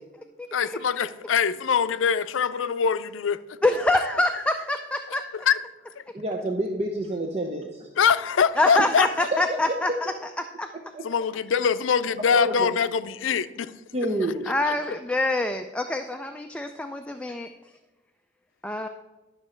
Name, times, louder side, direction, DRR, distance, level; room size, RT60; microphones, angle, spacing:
voice 1, 0.5-3.6 5.1-5.6 8.0-9.1 11.0-13.7 14.7-15.0, left 7 dB, 85° left, 0.4 m, -24 dB
voice 2, 3.6-5.2 8.6-10.1 10.4-10.7 14.5-17.5 18.6-18.9, left 2 dB, 5° left, 0.3 m, -25 dB
voice 3, 6.1-7.9 8.8-8.9 9.3-9.6 10.9-11.0 12.3-12.7 13.9-14.5, right 1 dB, 35° right, 0.7 m, -28 dB
11.0 x 6.2 x 4.4 m
head